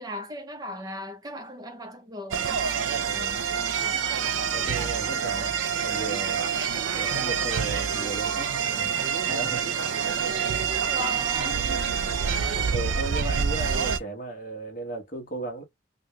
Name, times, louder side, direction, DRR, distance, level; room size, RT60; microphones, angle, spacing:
voice 1, 0.0-2.7 10.9-11.7, left 1 dB, 20° right, 0.6 m, -37 dB
sound 1, 2.3-14.0, right 7 dB, 70° right, 0.4 m, -27 dB
voice 2, 2.9-3.4 4.5-6.4 6.9-8.9 9.3-9.8 12.7-15.6, right 2 dB, 40° left, 1.2 m, -36 dB
sound 2, 7.8-13.3, left 1 dB, 20° left, 1.2 m, -47 dB
2.9 x 2.7 x 3.2 m
head